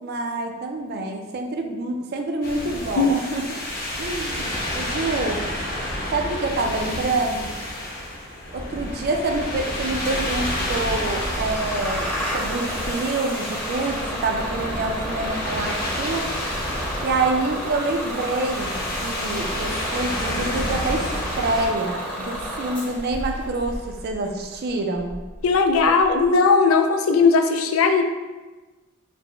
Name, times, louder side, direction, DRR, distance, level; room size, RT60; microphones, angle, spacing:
voice 1, 0.0-3.6 4.0-5.5 6.1-7.6 8.5-16.3 17.0-21.0 21.4-23.8 24.0-25.2, right 2 dB, 50° right, 3 dB, 0.4 m, -27 dB
sound 1, 2.4-21.7, left 1 dB, 45° left, 0.8 m, -30 dB
Bus / Engine starting, 10.0-26.3, equal, 10° left, 0.7 m, -32 dB
voice 2, 25.4-28.0, left 4 dB, 75° left, 6 dB, 0.4 m, -18 dB
4.2 x 2.1 x 3.1 m, 1.2 s
head